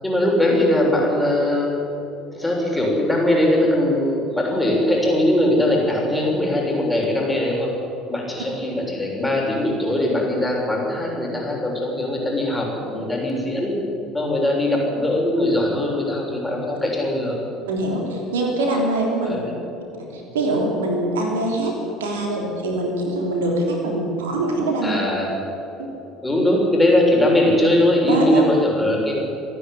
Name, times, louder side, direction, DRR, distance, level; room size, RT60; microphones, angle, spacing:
voice 1, 0.0-1.8 2.3-7.8 8.1-13.8 14.1-17.4 19.2-19.5 24.8-25.4 26.2-29.2, left 1 dB, 10° left, -2 dB, 6.9 m, -20 dB
voice 2, 17.7-19.4 20.1-25.0 25.8-25.9 28.1-28.4, right 2 dB, 75° right, 1 dB, 3.3 m, -23 dB
27.5 x 10.5 x 9.8 m, 2.9 s
figure-of-eight pair, 60°, 0 cm